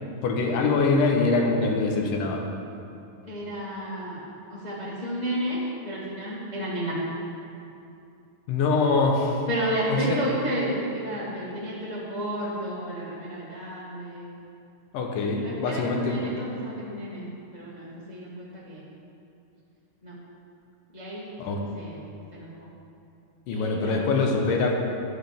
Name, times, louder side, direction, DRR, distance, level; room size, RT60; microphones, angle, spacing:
voice 1, 0.2-2.4 8.5-9.4 9.9-10.0 14.9-16.2 21.4-21.6 23.5-24.7, left 3 dB, 75° left, 1 dB, 2.5 m, -24 dB
voice 2, 3.3-4.2 4.5-5.6 5.8-7.0 9.5-14.3 15.4-18.8 20.0-20.2 20.9-22.0 22.3-22.7 23.5-24.2, right 1 dB, 35° left, -8 dB, 0.6 m, -32 dB
11.5 x 10.5 x 3.5 m, 2.7 s
omnidirectional pair, 4.0 m